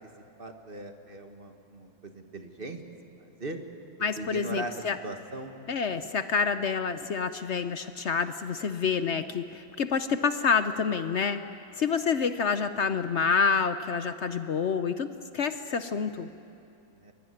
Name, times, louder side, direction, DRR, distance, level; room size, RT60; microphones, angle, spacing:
voice 1, 0.4-2.8 3.2-3.6 4.1-4.7 5.0-5.5 17.0-17.1, right 2 dB, 30° right, 5 dB, 1.7 m, -39 dB
voice 2, 4.0-5.0 5.7-11.4 11.8-16.3, left 5 dB, 60° left, 10 dB, 0.7 m, -28 dB
24.0 x 22.0 x 9.8 m, 2.6 s
omnidirectional pair, 2.1 m